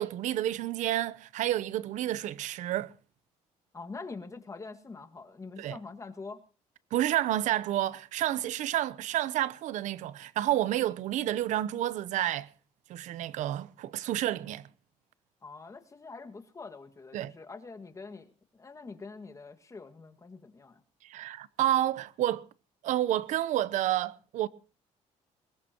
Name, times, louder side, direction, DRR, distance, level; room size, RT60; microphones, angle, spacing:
voice 1, 0.0-2.9 5.6-5.8 6.9-12.5 12.9-14.7 17.1-17.3 21.0-22.4 22.8-24.5, right 13 dB, 80° right, 0.8 m, -30 dB
voice 2, 3.7-6.4 15.4-20.8, left 4 dB, 25° left, 1.9 m, -45 dB
22.0 x 20.0 x 3.0 m
cardioid pair, 110°, 13 cm